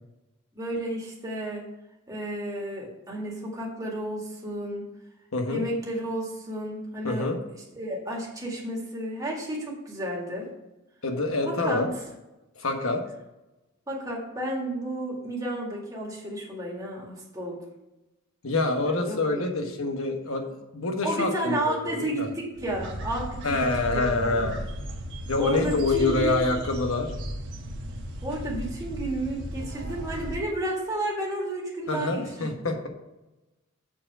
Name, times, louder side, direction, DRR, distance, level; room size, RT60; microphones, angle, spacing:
voice 1, 0.5-1.6 2.1-4.9 5.5-10.5 11.4-11.8 13.9-17.6 18.8-19.6 21.0-23.6 23.9-24.6 25.4-26.4 28.2-32.7, right 1 dB, 15° right, -3 dB, 1.9 m, -32 dB
voice 2, 5.3-5.6 7.0-7.4 11.0-11.9 12.6-13.0 18.4-22.3 23.4-24.6 25.3-27.1 31.9-32.9, left 2 dB, 70° left, 4 dB, 1.2 m, -26 dB
sound 1, 22.5-30.4, equal, 60° right, 1.2 m, -35 dB
7.3 x 4.5 x 6.1 m, 0.98 s
head